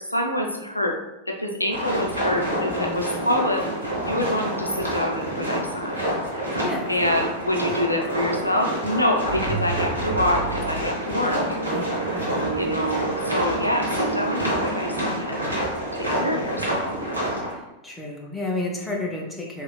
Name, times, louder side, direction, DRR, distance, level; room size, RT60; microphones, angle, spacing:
voice 1, 0.1-1.0 1.3-3.7 4.0-6.1 6.9-11.4 12.5-15.6 16.0-16.9, left 1 dB, 85° left, 2 dB, 0.4 m, -26 dB
sound 1, 1.7-17.5, equal, 90° right, 0.9 m, -28 dB
voice 2, 6.6-6.9 7.6-7.7 11.6-12.5 17.8-19.6, left 2 dB, 10° left, -1 dB, 0.7 m, -31 dB
sound 2, 9.3-15.5, right 4 dB, 65° right, 0.6 m, -31 dB
3.0 x 2.8 x 2.3 m, 0.94 s
figure-of-eight pair, 90°, 0 cm